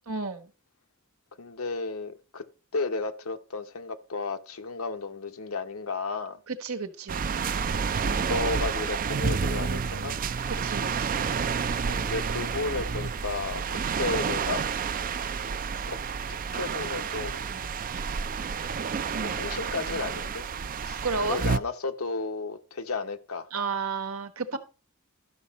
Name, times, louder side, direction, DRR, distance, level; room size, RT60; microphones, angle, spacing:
voice 1, 0.1-0.5 6.5-7.3 10.5-11.2 19.1-19.4 21.0-21.4 23.5-24.6, right 4 dB, 85° right, 1.4 m, -32 dB
voice 2, 1.4-2.4 2.7-6.4 7.9-10.2 11.9-14.6 15.9-16.0 16.3-17.5 19.2-20.5 20.8-23.5, left 3 dB, 80° left, 0.9 m, -33 dB
sound 1, 7.1-21.6, right 6 dB, 40° right, 0.4 m, -30 dB
12.5 x 6.4 x 4.1 m
head